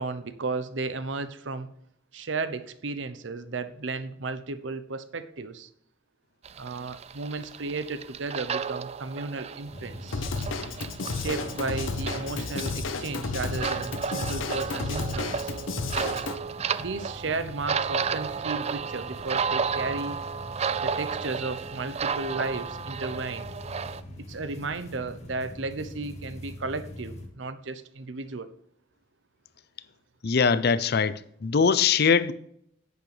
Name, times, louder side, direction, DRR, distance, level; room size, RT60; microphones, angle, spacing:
voice 1, 0.0-1.7 2.1-5.7 6.6-10.2 11.1-15.5 16.8-20.2 20.8-23.5 24.2-28.5, right 3 dB, 70° right, 0.8 m, -34 dB
sound 1, 6.4-24.0, right 6 dB, 35° right, 0.4 m, -33 dB
sound 2, 9.6-27.3, left 1 dB, 35° left, 2.0 m, -43 dB
Drum kit / Drum, 10.1-16.4, left 3 dB, 90° left, 0.9 m, -32 dB
voice 2, 30.2-32.3, left 6 dB, 55° left, 0.5 m, -22 dB
10.5 x 8.4 x 3.3 m
head